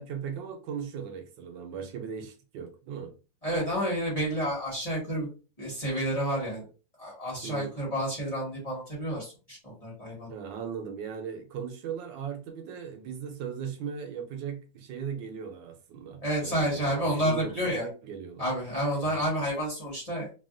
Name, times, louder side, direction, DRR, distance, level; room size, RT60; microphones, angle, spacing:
voice 1, 0.0-3.1 7.4-7.7 10.3-18.5 19.0-19.2, right 7 dB, 90° right, 1.4 m, -38 dB
voice 2, 3.4-5.3 5.6-6.6 7.0-10.3 16.2-17.9 18.4-20.3, equal, 25° left, 1.2 m, -30 dB
3.4 x 2.4 x 2.5 m
omnidirectional pair, 2.0 m